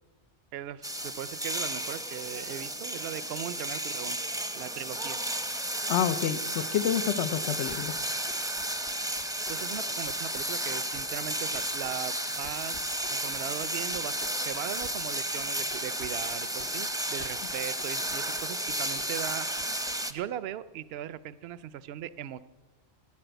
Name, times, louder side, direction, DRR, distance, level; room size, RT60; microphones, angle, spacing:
voice 1, 0.5-4.2 4.5-5.2 9.5-19.5 20.1-22.4, right 11 dB, 65° right, 16 dB, 0.8 m, -39 dB
sound 1, 0.8-20.1, right 1 dB, 5° right, 0.6 m, -33 dB
voice 2, 5.9-8.0, left 9 dB, 75° left, 13 dB, 1.0 m, -28 dB
sound 2, 7.7-9.8 10.1-11.3 11.5-12.2 12.4-19.3 19.6-20.2, left 4 dB, 60° left, 1.3 m, -48 dB
14.0 x 11.0 x 8.0 m, 1.3 s
omnidirectional pair, 1.2 m